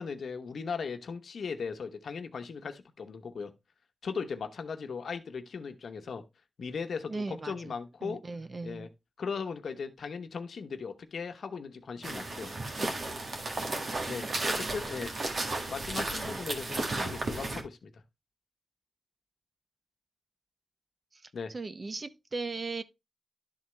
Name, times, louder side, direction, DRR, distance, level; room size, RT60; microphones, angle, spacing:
voice 1, 0.0-3.5 4.0-6.2 6.6-8.2 8.6-8.9 9.2-12.5 12.8-12.9 14.1-15.1 15.7-18.0 21.3-21.5, left 5 dB, 90° left, 0.8 m, -38 dB
voice 2, 7.1-7.7 8.0-8.9 21.5-22.8, right 3 dB, 45° right, 0.7 m, -37 dB
sound 1, 12.0-17.6, right 2 dB, 70° right, 1.8 m, -34 dB
11.5 x 3.9 x 3.2 m
wide cardioid pair, 80°, 0 cm